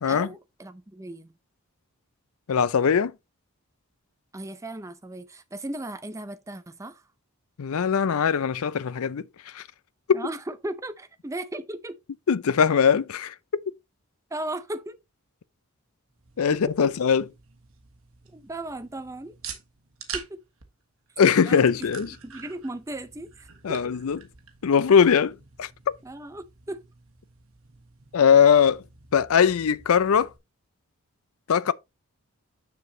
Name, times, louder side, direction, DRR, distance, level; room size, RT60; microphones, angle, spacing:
voice 1, 0.1-1.3 4.3-7.0 10.1-12.0 14.3-15.0 16.5-16.9 18.3-19.4 20.1-20.4 21.4-21.7 22.0-23.8 26.0-26.8, right 1 dB, 15° right, 0.5 m, -36 dB
voice 2, 2.5-3.1 7.6-9.3 9.5-9.6 10.1-10.2 12.3-13.3 16.4-17.2 21.2-22.1 23.6-24.2 24.6-25.7 28.1-28.8 29.1-30.3 31.5-31.7, left 7 dB, 75° left, 0.5 m, -20 dB
sound 1, 16.1-30.4, right 7 dB, 70° right, 1.5 m, -46 dB
6.8 x 6.6 x 2.8 m
head